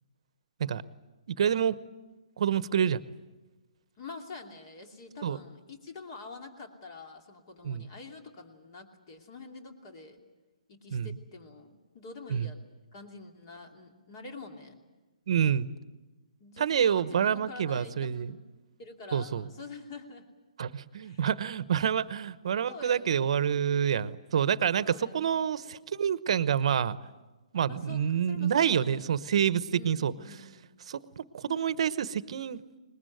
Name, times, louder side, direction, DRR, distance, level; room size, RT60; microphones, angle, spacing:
voice 1, 1.4-1.7 2.4-3.0 5.2-5.4 7.6-7.8 10.9-11.1 12.3-12.5 15.3-15.7 16.6-18.3 19.1-19.4 20.6-27.0 27.5-30.1 30.9-32.8, right 8 dB, 55° right, 15 dB, 1.0 m, -27 dB
voice 2, 4.0-10.2 10.7-12.6 12.9-14.8 16.4-18.4 18.8-20.3 21.0-21.2 22.7-23.4 24.8-25.8 27.7-29.0 29.7-30.8, left 3 dB, 35° left, 4 dB, 2.8 m, -46 dB
22.0 x 20.5 x 9.3 m, 1.2 s
hypercardioid pair, 160°, 4 cm